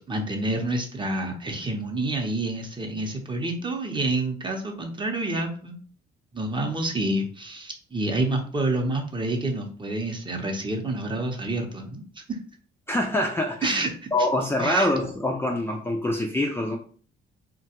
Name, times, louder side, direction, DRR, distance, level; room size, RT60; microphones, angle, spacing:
voice 1, 0.1-5.8 6.3-12.4 13.6-13.9 14.6-14.9, right 2 dB, 25° right, 3 dB, 0.7 m, -28 dB
voice 2, 12.9-13.8 14.1-16.8, left 1 dB, 10° left, 1 dB, 0.4 m, -25 dB
2.9 x 2.2 x 2.8 m, 0.43 s
cardioid pair, 90°, 20 cm